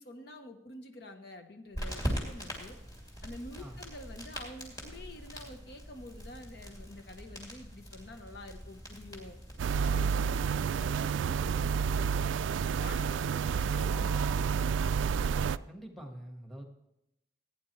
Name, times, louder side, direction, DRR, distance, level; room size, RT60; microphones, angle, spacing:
voice 1, 0.0-2.8 3.2-9.4 9.8-12.3 12.8-15.0, left 1 dB, 55° left, 6 dB, 0.9 m, -48 dB
sound 1, 1.7-9.9, equal, 20° left, 2.5 m, -41 dB
sound 2, 6.2-15.0, right 4 dB, 85° left, 4.2 m, -54 dB
sound 3, 9.6-15.6, right 6 dB, 75° right, 0.3 m, -29 dB
voice 2, 15.7-16.7, right 1 dB, ahead, 3 dB, 1.3 m, -46 dB
16.5 x 9.5 x 3.1 m, 0.86 s
head